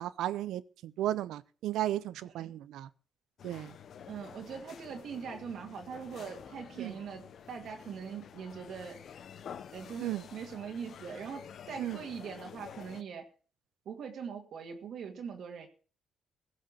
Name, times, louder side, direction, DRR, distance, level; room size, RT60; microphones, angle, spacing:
voice 1, 0.0-2.9 3.4-3.7 6.8-6.9 10.0-10.2 11.8-12.0, right 13 dB, 85° right, 0.8 m, -34 dB
sound 1, 3.4-13.0, left 8 dB, 60° left, 0.8 m, -49 dB
voice 2, 4.1-9.0 9.7-13.3 13.9-15.7, right 6 dB, 65° right, 2.0 m, -42 dB
16.0 x 6.5 x 7.2 m
cardioid pair, 90°, 0 cm